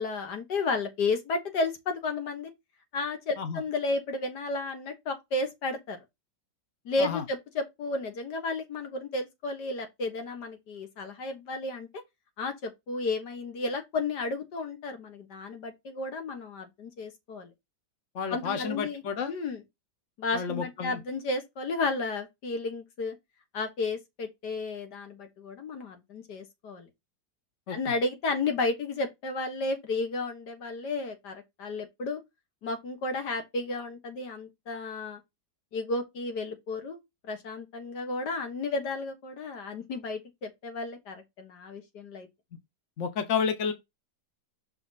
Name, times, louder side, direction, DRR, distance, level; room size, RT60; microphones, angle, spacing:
voice 1, 0.0-2.5 2.9-6.0 6.9-11.9 12.4-17.5 18.3-19.6 20.2-23.2 23.5-26.9 27.7-32.2 32.6-35.2 35.7-37.0 37.2-42.3, left 3 dB, 65° left, 2.1 m, -33 dB
voice 2, 18.1-19.3 20.3-21.0 27.7-27.8 43.0-43.7, left 6 dB, 50° left, 1.2 m, -30 dB
6.3 x 4.4 x 4.1 m
omnidirectional pair, 1.9 m